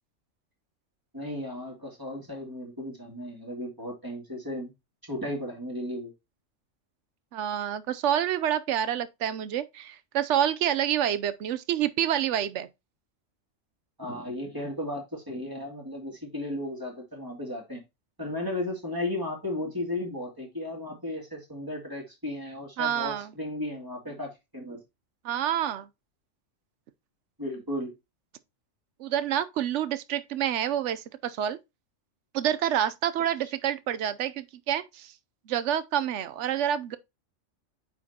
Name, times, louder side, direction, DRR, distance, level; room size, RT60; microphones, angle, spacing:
voice 1, 1.1-4.7 5.1-6.1 14.0-17.8 18.2-24.8 27.4-27.9 33.4-33.5, left 1 dB, 15° right, 2.4 m, -35 dB
voice 2, 7.3-12.7 22.8-23.3 25.2-25.9 29.0-31.6 32.3-35.1 35.5-37.0, right 10 dB, 70° right, 0.9 m, -28 dB
8.9 x 4.7 x 2.8 m
omnidirectional pair, 1.3 m